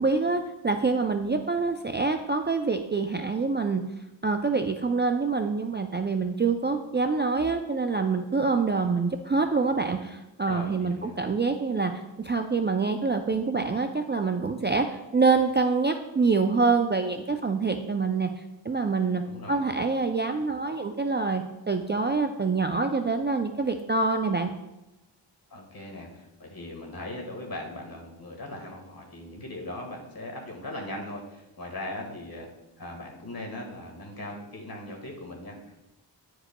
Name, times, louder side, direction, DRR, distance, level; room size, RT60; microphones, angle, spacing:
voice 1, 0.0-3.8 4.2-11.9 12.2-18.3 18.6-19.2 19.5-24.5, right 4 dB, 25° right, 5 dB, 0.3 m, -26 dB
voice 2, 10.5-11.2 19.2-19.7 25.5-32.5 32.8-35.9, left 1 dB, 50° left, 0 dB, 1.5 m, -39 dB
9.9 x 4.8 x 2.2 m, 0.97 s
wide cardioid pair, 70°, 45 cm